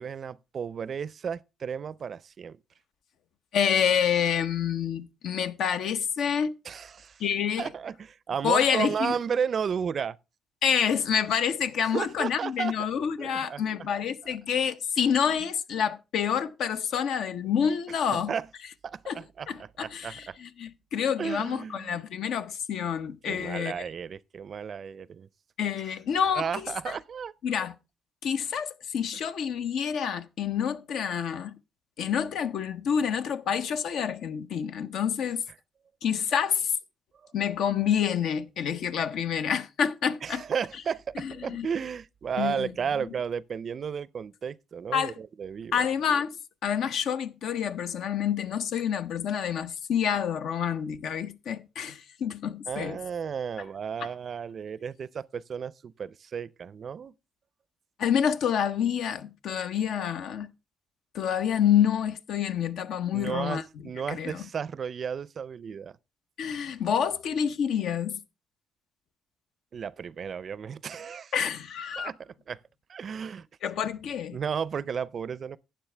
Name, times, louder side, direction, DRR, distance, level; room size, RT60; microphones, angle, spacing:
voice 1, 0.0-2.6 6.7-7.2 7.6-10.2 11.8-12.9 13.2-13.9 14.2-14.4 17.9-18.5 18.8-20.4 21.2-22.0 23.2-25.3 26.3-27.3 40.2-45.9 52.7-57.1 63.1-66.0 69.7-71.3 72.0-72.6 72.9-73.5 74.3-75.6, right 7 dB, 50° right, 0.4 m, -33 dB
voice 2, 3.5-6.5 7.2-7.7 8.4-9.2 10.6-18.3 19.1-19.2 19.5-23.7 25.6-27.0 27.4-27.7 28.2-31.6 32.0-35.4 36.0-36.7 37.3-40.4 41.2-41.7 42.4-42.7 44.9-45.2 45.7-46.4 46.6-53.0 58.0-60.5 61.1-63.6 64.1-64.4 66.4-68.2 71.3-72.1 73.6-74.4, left 8 dB, 75° left, 0.7 m, -28 dB
12.0 x 8.9 x 3.3 m
cardioid pair, 90°, 0 cm